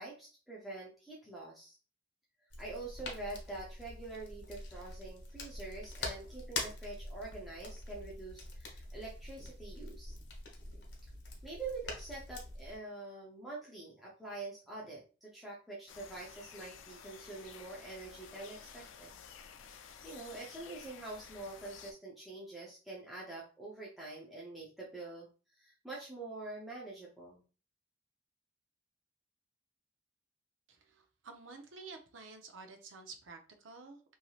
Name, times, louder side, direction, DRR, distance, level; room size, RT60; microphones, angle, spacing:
voice 1, 0.0-1.8 2.6-10.2 11.4-19.1 20.0-25.3 25.5-27.4, right 2 dB, ahead, -6 dB, 0.5 m, -46 dB
sound 1, 2.5-12.8, left 2 dB, 65° left, 0.8 m, -45 dB
sound 2, 15.9-21.9, left 7 dB, 90° left, 0.4 m, -53 dB
voice 2, 30.7-34.0, right 4 dB, 90° right, 5 dB, 0.6 m, -51 dB
3.1 x 2.7 x 2.3 m, 0.36 s
head